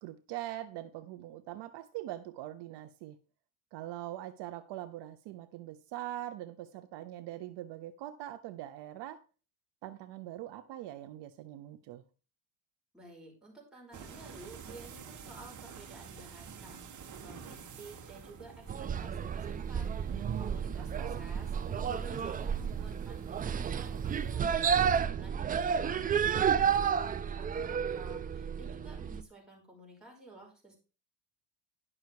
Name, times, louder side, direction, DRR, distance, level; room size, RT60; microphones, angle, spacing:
voice 1, 0.0-3.2 3.7-9.2 9.8-12.0 20.1-21.3, right 14 dB, 60° right, 0.9 m, -43 dB
voice 2, 12.9-30.8, right 2 dB, ahead, 5.3 m, -53 dB
sound 1, 13.9-24.4, right 6 dB, 40° right, 1.9 m, -49 dB
sound 2, 18.7-29.2, right 7 dB, 20° right, 0.4 m, -31 dB
11.0 x 6.4 x 4.7 m
cardioid pair, 135°, 46 cm